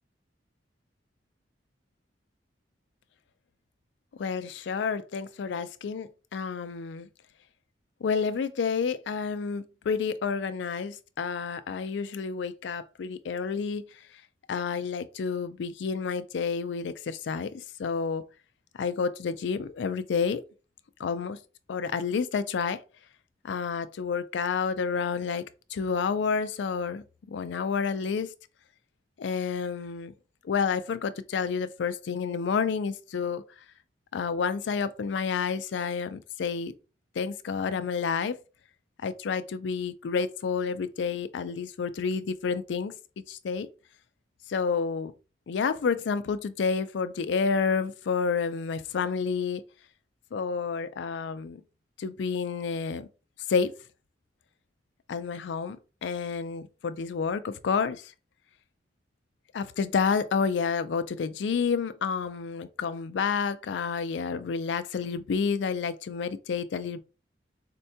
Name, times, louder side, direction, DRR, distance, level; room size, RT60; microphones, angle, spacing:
voice 1, 4.2-7.1 8.0-13.8 14.5-17.5 17.8-18.2 18.8-20.4 21.0-21.4 21.7-22.8 23.4-25.4 25.7-28.3 29.2-30.1 30.4-33.4 34.1-36.7 37.2-38.4 39.0-42.9 43.3-43.7 44.5-45.1 45.5-49.6 50.3-51.6 52.0-53.1 53.5-53.7 55.1-55.8 56.0-58.0 59.5-67.0, left 5 dB, 70° left, 0.4 m, -29 dB
4.4 x 2.2 x 2.7 m
head